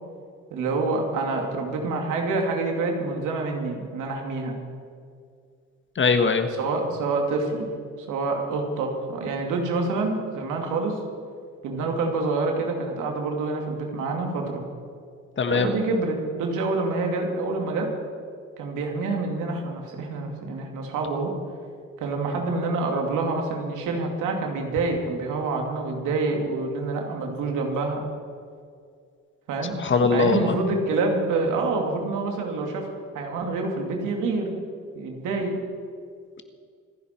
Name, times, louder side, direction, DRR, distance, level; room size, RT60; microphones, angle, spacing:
voice 1, 0.5-4.6 6.5-7.7 8.1-11.0 11.6-14.6 15.5-17.9 18.6-21.3 22.0-28.0 29.5-32.9 33.1-34.5 34.9-35.6, right 3 dB, 90° right, 2 dB, 2.7 m, -27 dB
voice 2, 6.0-6.5 15.4-15.7 29.8-30.5, left 4 dB, 40° left, 7 dB, 1.6 m, -21 dB
26.5 x 10.5 x 4.5 m, 2.2 s
cardioid pair, 90°, 30 cm